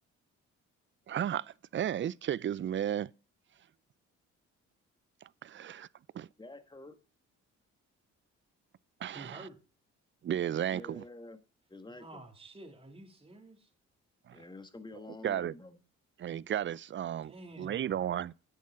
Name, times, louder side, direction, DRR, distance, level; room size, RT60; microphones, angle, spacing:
voice 1, 1.1-1.5 1.7-3.1 5.4-5.9 6.1-6.3 9.0-9.4 10.2-11.0 14.3-14.4 15.2-15.5 16.2-18.3, right 10 dB, 40° right, 0.4 m, -33 dB
voice 2, 6.4-6.9 10.7-11.4 11.7-12.2 14.3-15.8, left 2 dB, 15° left, 1.5 m, -48 dB
voice 3, 9.1-9.6 11.9-13.7 17.2-18.0, right 2 dB, 20° right, 2.6 m, -50 dB
10.5 x 8.4 x 3.7 m
cardioid pair, 90°, 30 cm